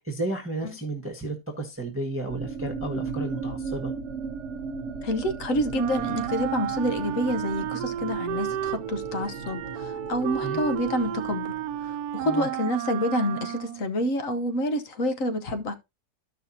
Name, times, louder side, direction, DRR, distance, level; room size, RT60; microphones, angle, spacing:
voice 1, 0.0-3.9 10.4-10.6 12.2-12.5, right 2 dB, 10° right, 1.3 m, -32 dB
sound 1, 2.3-12.1, right 4 dB, 60° right, 0.9 m, -36 dB
voice 2, 5.0-11.5 11.8-15.7, equal, 60° left, 1.4 m, -28 dB
Wind instrument woodwind instrument, 5.7-13.9, right 11 dB, 80° right, 1.2 m, -32 dB
13.5 x 5.7 x 2.8 m
omnidirectional pair, 1.6 m